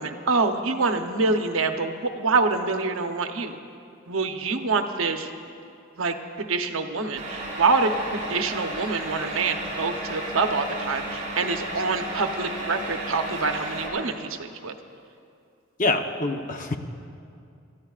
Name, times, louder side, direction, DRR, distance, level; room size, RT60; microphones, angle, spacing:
voice 1, 0.0-3.6 4.1-5.3 6.0-14.7, right 4 dB, 70° right, 6 dB, 0.8 m, -26 dB
sound 1, 7.1-13.9, right 1 dB, 35° right, 4.4 m, -33 dB
voice 2, 15.8-16.8, left 2 dB, 40° left, 5 dB, 0.8 m, -25 dB
29.0 x 13.5 x 2.4 m, 2.5 s
head